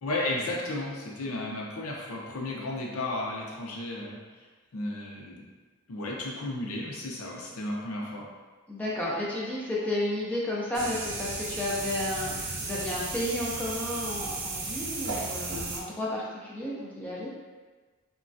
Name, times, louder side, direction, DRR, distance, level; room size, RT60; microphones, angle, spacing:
voice 1, 0.0-4.5 4.7-5.5 5.9-8.3, left 2 dB, 80° left, -3 dB, 0.6 m, -34 dB
voice 2, 8.7-17.3, left 1 dB, 5° left, -6 dB, 0.3 m, -32 dB
sound 1, 10.7-15.8, right 3 dB, 55° right, 0.5 m, -34 dB
3.1 x 2.3 x 2.5 m, 1.4 s
head